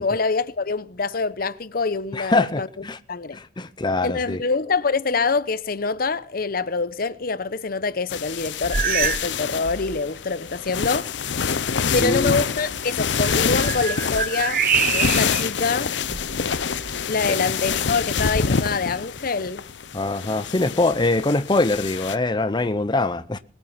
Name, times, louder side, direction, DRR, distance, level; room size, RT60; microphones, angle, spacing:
voice 1, 0.0-2.7 3.1-3.4 4.0-11.1 11.9-15.9 17.1-19.6, left 4 dB, 55° left, 0.8 m, -25 dB
voice 2, 2.1-3.0 3.3-4.4 12.0-12.3 17.3-17.4 19.9-23.4, left 2 dB, 25° left, 0.7 m, -23 dB
sound 1, 8.1-22.2, left 6 dB, 85° left, 0.7 m, -26 dB
sound 2, 8.7-9.4 9.6-10.0 10.7-10.8 13.1-15.5 16.0-17.0, right 7 dB, 55° right, 1.3 m, -26 dB
20.0 x 9.0 x 5.7 m
head